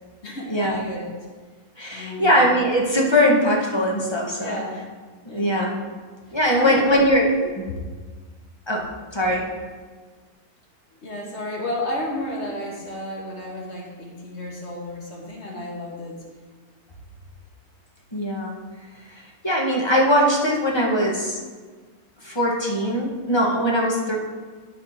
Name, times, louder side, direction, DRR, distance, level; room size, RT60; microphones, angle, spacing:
voice 1, 0.2-1.1 1.9-2.3 4.4-4.8 5.3-5.8 6.5-7.0 11.0-16.2, left 1 dB, 50° left, -2 dB, 1.6 m, -32 dB
voice 2, 1.8-4.6 5.2-5.8 6.3-7.7 8.7-8.9 9.1-9.4 18.1-18.5 19.1-21.4 22.2-24.2, equal, 20° left, -3 dB, 1.2 m, -21 dB
11.0 x 5.0 x 4.3 m, 1.4 s
omnidirectional pair, 1.6 m